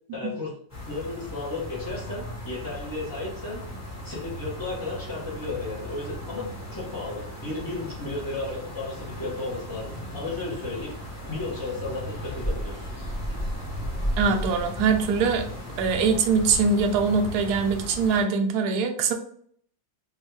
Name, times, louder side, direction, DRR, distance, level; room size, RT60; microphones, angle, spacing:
voice 1, 0.1-0.5 0.9-3.6 4.0-10.9 11.3-12.9, left 3 dB, 30° left, -7 dB, 0.4 m, -34 dB
sound 1, 0.7-18.2, equal, 15° left, 0.8 m, -35 dB
voice 2, 14.2-15.5 15.8-19.1, right 5 dB, 70° right, 4 dB, 0.9 m, -23 dB
3.5 x 2.3 x 3.1 m, 0.62 s
omnidirectional pair, 2.0 m